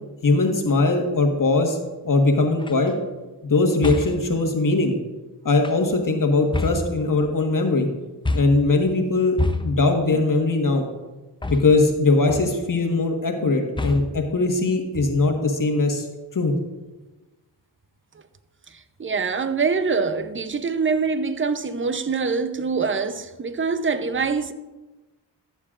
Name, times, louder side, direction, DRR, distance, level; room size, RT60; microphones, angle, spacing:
voice 1, 0.2-1.8 2.0-2.9 3.4-5.0 5.4-7.9 8.3-10.8 11.5-16.0 16.3-16.5, left 3 dB, 45° left, 1.5 m, -20 dB
sound 1, 2.6-2.9 3.8-4.3 5.5-6.0 6.5-7.4 8.2-8.8 9.4-10.0 11.4-12.0 12.3-12.7 13.8-14.3 14.9-15.5, left 2 dB, 10° left, 0.6 m, -28 dB
voice 2, 19.0-24.5, right 5 dB, 30° right, 0.7 m, -24 dB
14.5 x 7.1 x 2.5 m
cardioid pair, 55°, 43 cm